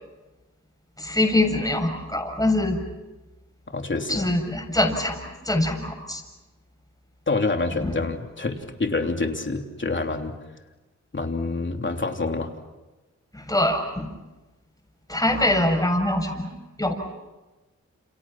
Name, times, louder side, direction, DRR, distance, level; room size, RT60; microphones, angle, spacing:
voice 1, 1.0-2.8 4.1-5.2 5.4-6.2 7.8-7.9 13.3-14.1 15.1-16.5 16.8-16.9, left 1 dB, 10° left, 3 dB, 7.3 m, -23 dB
voice 2, 3.7-4.3 7.3-10.3 11.1-12.5, left 3 dB, 40° left, 4 dB, 3.3 m, -27 dB
30.0 x 29.0 x 6.0 m, 1.1 s
cardioid pair, 65°, 29 cm